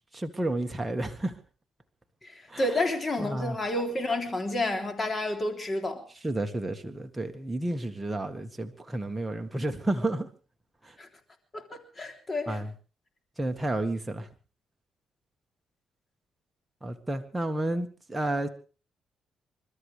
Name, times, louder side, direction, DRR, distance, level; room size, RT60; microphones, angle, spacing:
voice 1, 0.1-1.3 2.5-2.6 3.2-3.6 6.2-10.3 10.8-10.9 12.5-12.7 13.4-14.3 16.8-18.5, right 2 dB, 10° right, 1.7 m, -31 dB
voice 2, 2.2-6.0 11.0-11.1 11.5-12.6, left 2 dB, 30° left, 3.5 m, -30 dB
28.5 x 13.0 x 3.5 m
cardioid pair, 90°, 0 cm